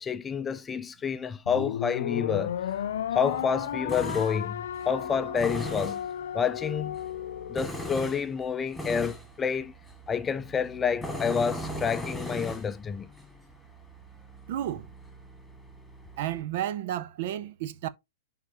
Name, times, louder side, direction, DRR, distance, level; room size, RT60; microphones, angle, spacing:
voice 1, 0.0-2.6 3.1-6.0 6.3-7.0 7.5-9.7 10.1-13.1, left 6 dB, 20° left, 0.5 m, -29 dB
sound 1, 1.5-7.9, left 10 dB, 65° left, 0.5 m, -33 dB
Tools, 2.3-16.4, equal, ahead, 2.4 m, -40 dB
voice 2, 14.5-14.9 16.2-17.9, right 12 dB, 50° right, 0.9 m, -32 dB
10.5 x 3.9 x 3.0 m
figure-of-eight pair, 105°, 0 cm